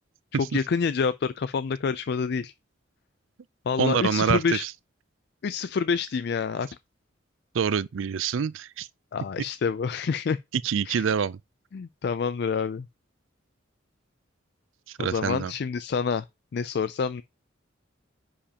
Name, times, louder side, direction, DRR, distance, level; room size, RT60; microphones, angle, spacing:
voice 1, 0.4-2.5 3.7-4.6 5.4-6.7 9.1-10.4 10.8-11.0 11.7-12.9 15.0-16.2 16.5-17.2, left 5 dB, 55° left, 0.3 m, -27 dB
voice 2, 3.8-4.7 7.5-8.9 10.6-11.4 15.0-15.5, right 7 dB, 85° right, 0.4 m, -26 dB
10.0 x 5.0 x 2.9 m
head